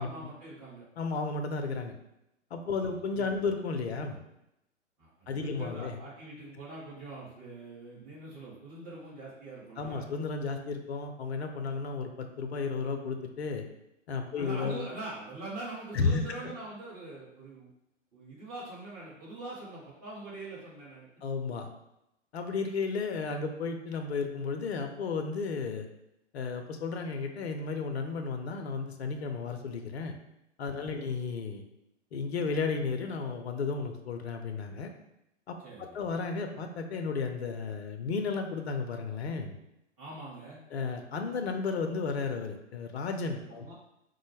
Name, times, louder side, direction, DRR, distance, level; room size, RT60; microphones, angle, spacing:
voice 1, 0.0-0.8 2.7-3.5 5.0-10.0 14.4-17.7 18.1-21.1 30.7-31.1 35.6-36.0 40.0-40.6 43.4-43.7, right 2 dB, 30° right, -6 dB, 1.4 m, -43 dB
voice 2, 1.0-1.9 2.5-4.2 5.3-5.9 9.8-13.6 14.1-14.8 15.9-16.2 21.2-21.7 22.3-25.9 26.3-30.1 30.6-31.6 32.1-34.9 35.5-39.5 40.7-43.7, left 4 dB, 60° left, 5 dB, 0.6 m, -33 dB
4.0 x 2.1 x 3.2 m, 0.85 s
figure-of-eight pair, 120°, 37 cm